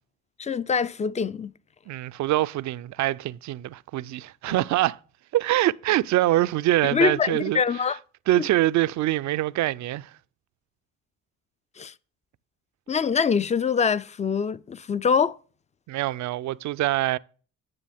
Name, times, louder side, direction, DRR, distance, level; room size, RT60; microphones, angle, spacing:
voice 1, 0.4-1.5 4.5-4.6 6.9-8.0 11.8-11.9 12.9-15.4, left 6 dB, 25° left, 0.4 m, -24 dB
voice 2, 1.9-5.0 5.3-7.8 8.3-10.1 15.9-17.2, right 15 dB, 70° right, 0.5 m, -24 dB
9.9 x 6.9 x 3.5 m
cardioid pair, 90°, 30 cm